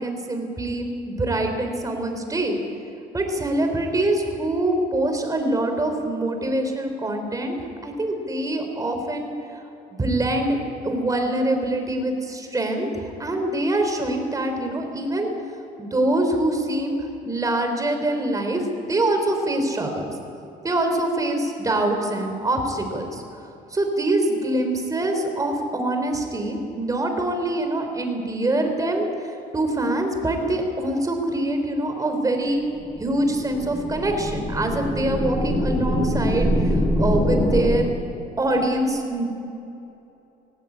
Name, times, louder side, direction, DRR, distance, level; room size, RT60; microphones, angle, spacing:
voice 1, 0.0-2.6 3.1-7.6 7.8-9.6 10.0-10.6 10.8-15.3 15.8-20.1 20.6-23.2 23.7-32.6 33.0-37.9 38.4-39.3, right 1 dB, 20° right, 4 dB, 3.9 m, -24 dB
sound 1, 32.7-37.6, equal, 25° left, 5.4 m, -24 dB
18.0 x 18.0 x 8.7 m, 2.8 s
cardioid pair, 110°, 17 cm